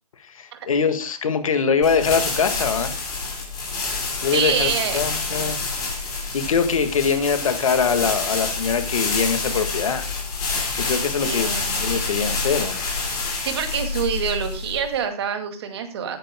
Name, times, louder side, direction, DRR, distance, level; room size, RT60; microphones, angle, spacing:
voice 1, 0.3-2.9 4.2-5.6 6.3-10.0 10.7-11.5 11.8-12.9, left 6 dB, 60° left, 9 dB, 1.8 m, -23 dB
sound 1, 1.8-15.0, left 4 dB, 20° left, 4.7 m, -27 dB
voice 2, 4.3-5.0 11.2-11.9 13.4-16.2, right 7 dB, 40° right, 6 dB, 2.2 m, -26 dB
19.5 x 9.6 x 2.2 m, 0.31 s
hypercardioid pair, 150°, 20 cm